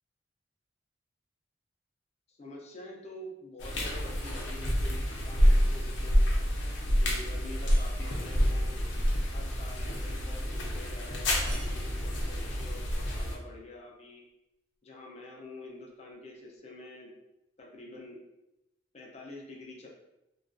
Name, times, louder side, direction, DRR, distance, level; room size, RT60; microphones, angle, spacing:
voice 1, 2.3-6.3 6.8-8.8 9.3-14.3 14.8-17.1 17.6-18.2 18.9-19.9, left 2 dB, 35° left, -1 dB, 0.5 m, -47 dB
sound 1, 3.6-13.4, equal, 90° left, 0.5 m, -28 dB
sound 2, 4.3-5.1 7.7-8.5 11.5-12.4, right 2 dB, 60° right, 0.5 m, -52 dB
2.3 x 2.3 x 2.4 m, 0.91 s
head